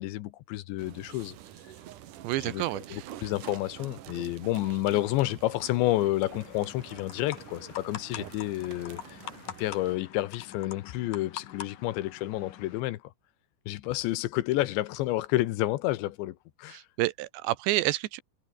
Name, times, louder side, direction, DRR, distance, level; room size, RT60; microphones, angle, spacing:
voice 1, 0.0-1.4 2.4-9.2 9.6-13.1 13.7-16.8, left 16 dB, 85° left, 3.3 m, -30 dB
sound 1, 0.8-10.0, right 12 dB, 60° right, 2.3 m, -47 dB
voice 2, 2.2-3.1 16.7-18.2, right 17 dB, 85° right, 3.1 m, -29 dB
sound 2, 6.3-12.8, left 10 dB, 55° left, 3.2 m, -44 dB
omnidirectional pair, 5.2 m